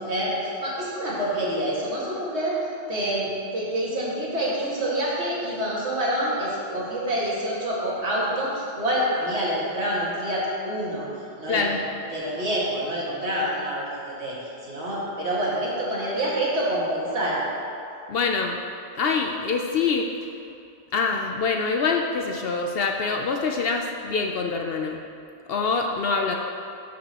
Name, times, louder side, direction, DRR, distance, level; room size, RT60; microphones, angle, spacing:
voice 1, 0.0-2.6 2.9-11.1 11.4-11.8 12.1-13.9 14.2-17.4, right 1 dB, 65° right, -7 dB, 2.1 m, -27 dB
voice 2, 11.5-11.8 18.1-18.6 19.0-20.1 20.9-25.0 25.5-26.4, left 4 dB, 60° left, 2 dB, 0.7 m, -25 dB
12.0 x 6.0 x 2.9 m, 2.6 s
omnidirectional pair, 1.2 m